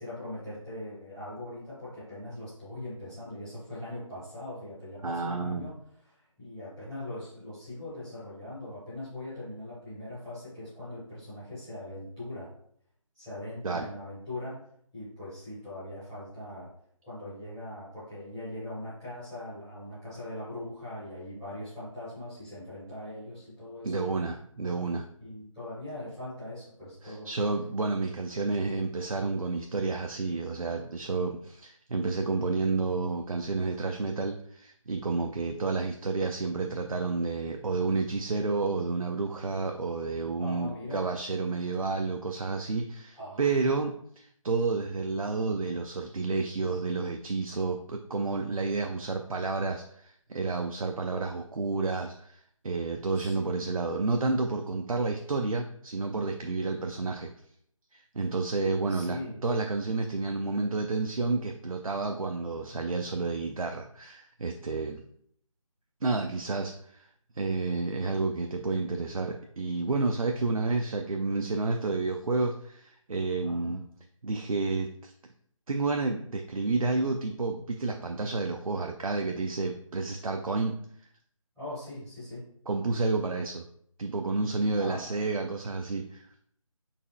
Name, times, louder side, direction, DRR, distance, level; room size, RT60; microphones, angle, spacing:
voice 1, 0.0-5.8 6.1-12.5 13.1-14.6 14.9-16.7 17.0-24.1 25.2-27.3 40.4-41.1 43.2-43.5 53.1-53.7 58.9-59.4 73.4-73.8 81.6-82.4 84.7-85.0, left 1 dB, 5° left, -14 dB, 0.7 m, -41 dB
voice 2, 5.0-5.7 13.6-13.9 23.8-25.0 27.0-57.3 57.9-65.0 66.0-67.1 67.3-73.9 74.2-75.1 75.7-80.7 82.7-83.6 84.0-86.3, right 3 dB, 80° right, 3 dB, 0.4 m, -30 dB
4.1 x 3.1 x 2.3 m, 0.66 s
figure-of-eight pair, 155°, 18 cm